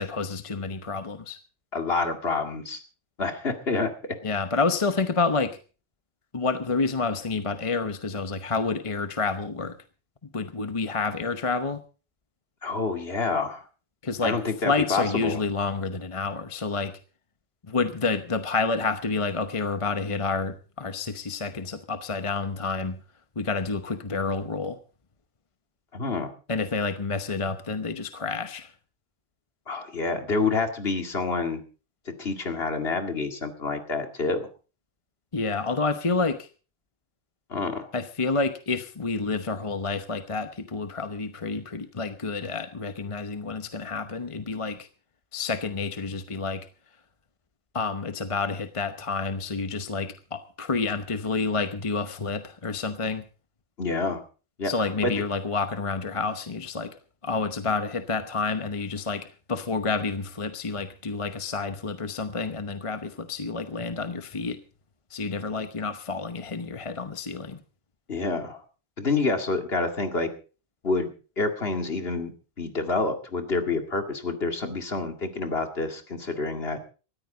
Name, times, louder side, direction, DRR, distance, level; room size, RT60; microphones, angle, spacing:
voice 1, 0.0-1.4 4.2-5.6 6.3-9.8 10.3-11.8 14.0-14.4 14.6-17.0 17.7-23.0 23.4-24.8 26.5-28.7 35.3-36.5 37.9-44.9 45.3-46.7 47.7-53.2 54.6-64.6 65.1-67.6, left 4 dB, 30° left, 9 dB, 0.9 m, -29 dB
voice 2, 1.7-2.8 3.2-3.9 12.6-13.6 14.2-15.4 25.9-26.3 29.7-31.6 32.1-34.5 37.5-37.9 53.8-54.2 54.6-54.7 55.0-55.2 68.1-68.6 69.0-70.3 70.8-71.1 71.4-72.3 72.6-76.8, left 3 dB, 50° left, 6 dB, 2.4 m, -28 dB
19.0 x 14.0 x 3.9 m, 0.36 s
omnidirectional pair, 1.4 m